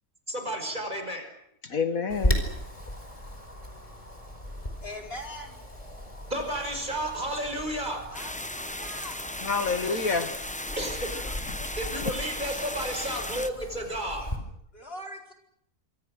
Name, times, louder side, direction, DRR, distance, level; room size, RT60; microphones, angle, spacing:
voice 1, 0.3-1.3 6.3-8.1 10.7-11.2 11.8-14.3, right 1 dB, 30° right, 5 dB, 5.6 m, -32 dB
voice 2, 1.6-2.4 9.4-10.4 11.3-11.8, left 4 dB, 65° left, 9 dB, 2.0 m, -29 dB
Wind, 2.1-14.4, equal, 25° left, 4.7 m, -36 dB
voice 3, 4.8-5.6 8.1-9.2 14.7-15.3, left 1 dB, 40° left, 2 dB, 4.8 m, -41 dB
sound 1, 8.1-13.5, left 1 dB, 5° left, 0.6 m, -36 dB
27.0 x 25.0 x 6.5 m, 0.70 s
omnidirectional pair, 1.6 m